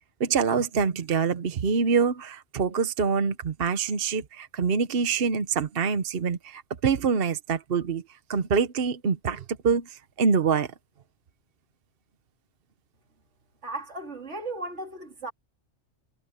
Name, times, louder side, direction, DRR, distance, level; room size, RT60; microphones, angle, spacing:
voice 1, 0.2-8.0 8.3-10.7, right 5 dB, 55° right, 1.1 m, -25 dB
voice 2, 13.6-15.3, right 2 dB, 80° right, 3.0 m, -36 dB
omnidirectional pair, 1.2 m